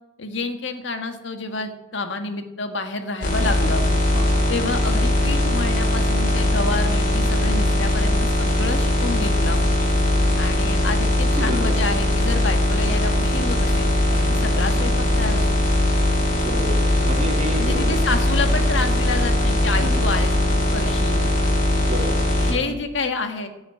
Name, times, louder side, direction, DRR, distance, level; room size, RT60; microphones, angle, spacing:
voice 1, 0.2-3.8 4.5-9.6 10.4-13.9 14.3-15.5 17.6-20.3 20.7-21.3 22.4-23.5, left 3 dB, 75° left, 6 dB, 1.6 m, -28 dB
sound 1, 3.2-22.5, left 1 dB, 50° left, 3.8 m, -20 dB
voice 2, 4.1-4.4 11.4-11.7 14.1-14.2 16.3-18.0 18.5-18.6 19.7-20.1 21.7-22.3 22.6-22.8, equal, 35° right, 2 dB, 2.3 m, -31 dB
16.5 x 6.4 x 9.2 m, 0.98 s
head